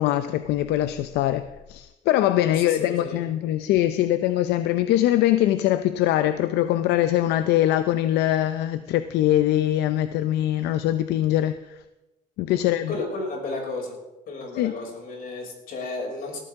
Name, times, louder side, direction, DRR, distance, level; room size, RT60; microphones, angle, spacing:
voice 1, 0.0-11.8 12.4-13.0 14.5-14.8, left 13 dB, 85° left, 11 dB, 0.6 m, -22 dB
voice 2, 2.4-3.2 12.5-12.6 12.9-14.0 14.3-16.4, left 3 dB, 60° left, -1 dB, 6.2 m, -33 dB
18.5 x 13.0 x 3.7 m, 0.98 s
cardioid pair, 110°, 17 cm